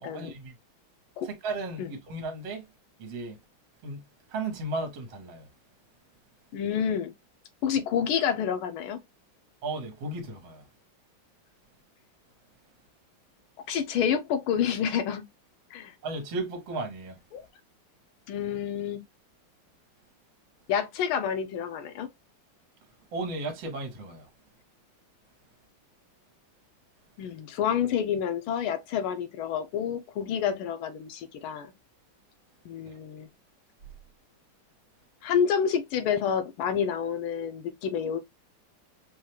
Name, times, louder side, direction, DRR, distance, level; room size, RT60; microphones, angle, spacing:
voice 1, 0.0-0.5 1.2-2.7 3.0-3.4 3.8-5.5 9.6-10.7 16.0-17.2 23.1-24.3 32.9-33.0, right 2 dB, 65° right, 1.8 m, -35 dB
voice 2, 6.5-7.1 7.6-9.0 13.7-15.2 15.7-15.9 17.3-17.4 18.3-19.0 20.7-22.1 27.2-31.7 32.6-33.3 35.2-38.2, left 8 dB, 85° left, 1.5 m, -28 dB
4.7 x 2.3 x 2.8 m
omnidirectional pair, 2.3 m